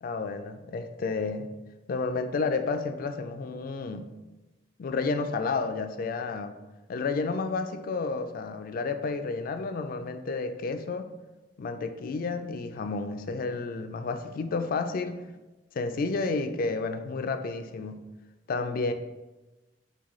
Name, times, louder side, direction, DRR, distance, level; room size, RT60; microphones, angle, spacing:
voice 1, 0.0-1.5 1.9-4.1 4.8-6.6 6.9-11.1 11.6-15.2 15.7-18.0 18.5-18.9, left 4 dB, 50° left, 8 dB, 0.3 m, -31 dB
6.1 x 2.2 x 3.0 m, 1.1 s
head